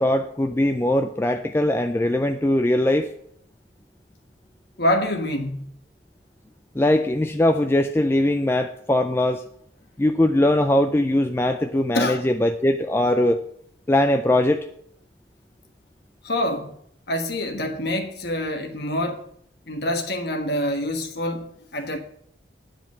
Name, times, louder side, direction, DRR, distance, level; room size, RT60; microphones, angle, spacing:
voice 1, 0.0-3.1 6.8-9.4 10.0-13.4 13.9-14.7, left 1 dB, 10° left, 0.3 m, -21 dB
voice 2, 4.8-5.7 11.9-12.2 16.2-16.7 17.1-19.3 19.7-22.0, left 1 dB, 55° left, 1.3 m, -26 dB
9.4 x 5.0 x 7.3 m
head